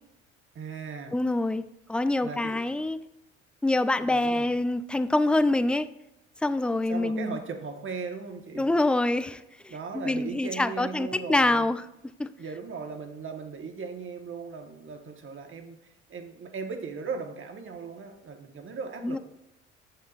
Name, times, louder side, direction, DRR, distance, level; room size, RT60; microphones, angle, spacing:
voice 1, 0.5-1.2 2.2-2.7 4.0-4.5 6.9-8.7 9.7-11.7 12.4-19.2, right 5 dB, 40° right, 6 dB, 1.2 m, -38 dB
voice 2, 1.1-1.6 1.9-3.0 3.6-5.9 6.4-7.4 8.6-11.8 12.2-12.3 19.0-19.2, left 2 dB, 5° left, 13 dB, 0.3 m, -26 dB
8.9 x 7.2 x 2.4 m, 0.89 s
hypercardioid pair, 60°, 30 cm